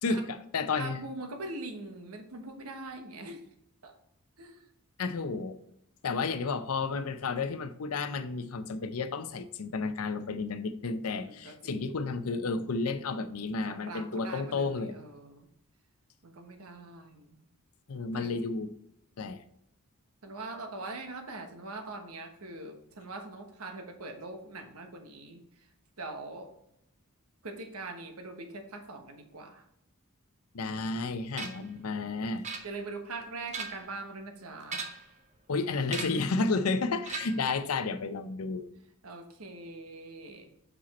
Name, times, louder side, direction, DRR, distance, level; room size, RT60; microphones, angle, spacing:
voice 1, 0.0-1.0 5.0-5.6 6.0-14.9 17.9-18.7 19.2-19.4 30.5-32.4 35.5-38.7, left 4 dB, 75° left, 11 dB, 0.6 m, -32 dB
voice 2, 0.8-3.4 3.8-3.9 4.4-4.7 11.2-11.8 13.6-15.5 16.2-17.4 18.1-18.4 20.2-25.7 26.0-26.5 27.4-29.6 32.6-34.8 39.0-40.5, right 2 dB, 75° right, 5 dB, 1.1 m, -42 dB
sound 1, 31.4-31.7 32.4-33.0 33.4-34.0 34.6-35.2 35.9-36.3 37.0-37.5, right 4 dB, 35° right, 0.8 m, -39 dB
5.6 x 5.1 x 4.2 m, 0.79 s
head